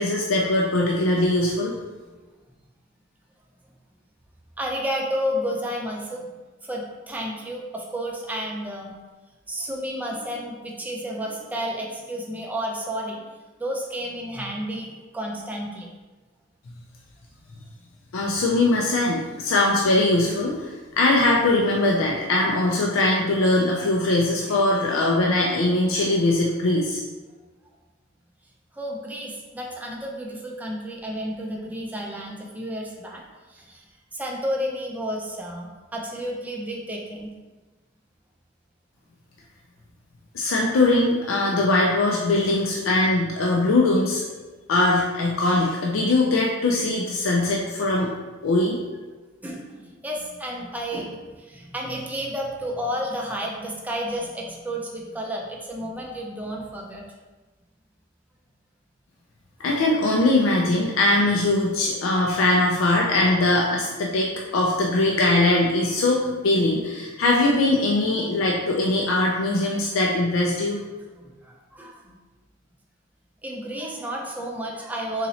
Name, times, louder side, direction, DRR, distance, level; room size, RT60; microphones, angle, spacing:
voice 1, 0.0-1.7 18.1-27.0 40.3-44.2 44.7-48.1 48.4-48.8 59.6-70.8, left 2 dB, 85° left, -2 dB, 0.4 m, -21 dB
voice 2, 4.6-9.0 9.5-13.2 13.6-15.9 28.7-33.2 33.5-33.8 34.1-37.3 49.4-57.0 71.1-72.2 73.4-75.3, equal, 10° right, -1 dB, 0.4 m, -31 dB
4.0 x 2.9 x 2.8 m, 1.3 s
head